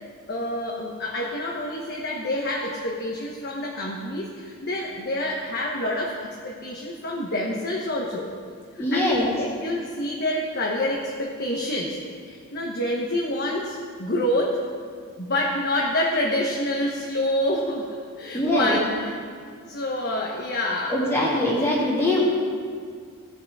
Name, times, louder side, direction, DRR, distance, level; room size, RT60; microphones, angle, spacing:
voice 1, 0.3-8.4 8.7-12.0 12.2-14.6 15.2-19.2 19.7-21.0, left 1 dB, 50° left, -2 dB, 1.1 m, -27 dB
voice 2, 8.8-9.2 18.3-18.7 20.9-22.2, left 1 dB, 10° left, -7 dB, 2.1 m, -22 dB
17.0 x 6.0 x 4.7 m, 2.1 s
head